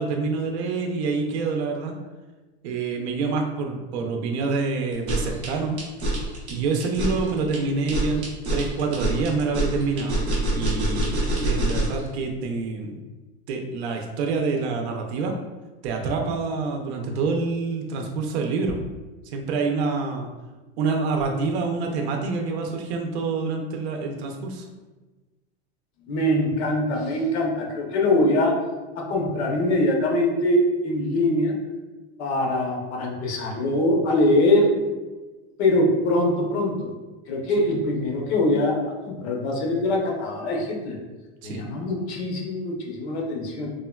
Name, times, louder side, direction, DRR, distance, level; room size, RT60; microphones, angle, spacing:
voice 1, 0.0-1.9 2.6-5.8 6.5-8.2 8.5-13.0 13.5-15.3 15.8-18.8 19.3-20.3 20.8-24.7 41.4-41.6, right 4 dB, 80° right, 2 dB, 0.5 m, -27 dB
sound 1, 4.9-12.0, right 1 dB, 20° right, 0.3 m, -26 dB
voice 2, 26.0-28.6 29.0-31.5 32.2-34.8 35.6-36.9 37.3-41.0 41.4-43.7, left 1 dB, 80° left, 0 dB, 0.8 m, -23 dB
3.6 x 2.1 x 2.2 m, 1.2 s
supercardioid pair, 180°, 32 cm